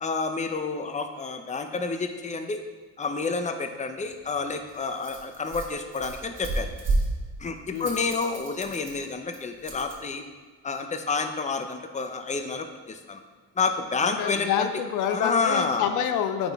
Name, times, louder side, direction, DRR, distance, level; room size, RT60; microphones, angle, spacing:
voice 1, 0.0-2.6 3.0-6.7 7.4-10.2 10.6-13.2 13.6-14.7 15.1-15.9, left 4 dB, 25° left, 6 dB, 0.7 m, -29 dB
Rattle, 4.0-10.0, right 2 dB, 40° right, 1.5 m, -33 dB
voice 2, 14.0-16.5, left 8 dB, 90° left, 7 dB, 0.6 m, -27 dB
9.6 x 3.8 x 3.6 m, 1.4 s
cardioid pair, 90°, 30 cm